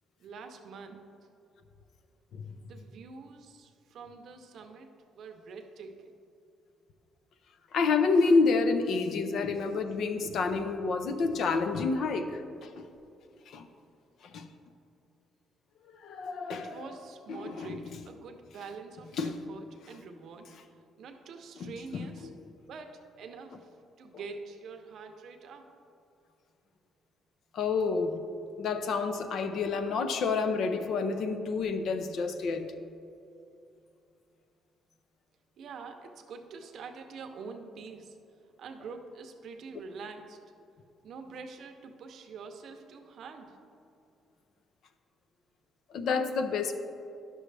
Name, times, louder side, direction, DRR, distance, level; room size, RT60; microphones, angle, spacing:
voice 1, 0.2-1.0 2.6-4.9 5.1-6.1 16.5-20.5 21.0-22.3 22.7-23.7 24.0-25.7 35.6-38.2 38.6-40.4 41.0-43.6, right 4 dB, 55° right, 5 dB, 0.7 m, -45 dB
voice 2, 7.7-12.9 13.5-13.7 14.2-14.5 15.9-16.8 17.3-17.8 19.2-19.5 21.6-22.3 27.5-28.2 28.6-32.7 45.9-46.7, left 4 dB, 60° left, 8 dB, 0.5 m, -29 dB
11.0 x 6.1 x 3.3 m, 2.6 s
cardioid pair, 160°, 0 cm